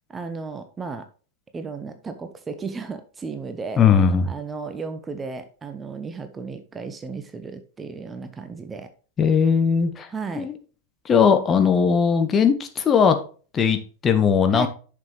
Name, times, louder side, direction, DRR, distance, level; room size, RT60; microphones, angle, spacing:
voice 1, 0.1-1.1 1.5-3.8 4.3-8.9 10.1-10.5 14.5-14.7, right 4 dB, 15° right, 1.0 m, -34 dB
voice 2, 3.8-4.3 9.2-10.1 10.4-10.5 11.0-13.2 13.5-14.7, left 6 dB, 25° left, 1.5 m, -19 dB
11.0 x 6.7 x 3.3 m
figure-of-eight pair, 90°, 0 cm